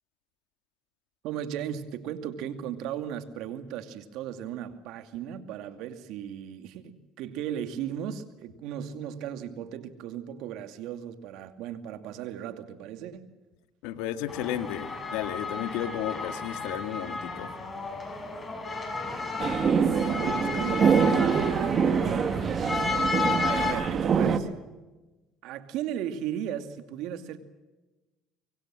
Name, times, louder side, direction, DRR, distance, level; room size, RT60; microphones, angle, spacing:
voice 1, 1.2-13.3 19.8-22.3 23.5-24.5 25.4-27.4, right 10 dB, 70° right, 9 dB, 2.4 m, -36 dB
voice 2, 13.8-17.5, left 11 dB, 80° left, 9 dB, 2.0 m, -33 dB
sound 1, 14.3-23.7, left 4 dB, 25° left, 6.0 m, -33 dB
sound 2, 19.4-24.4, right 6 dB, 40° right, 2.1 m, -25 dB
24.0 x 24.0 x 7.6 m, 1.1 s
supercardioid pair, 95°, 0 cm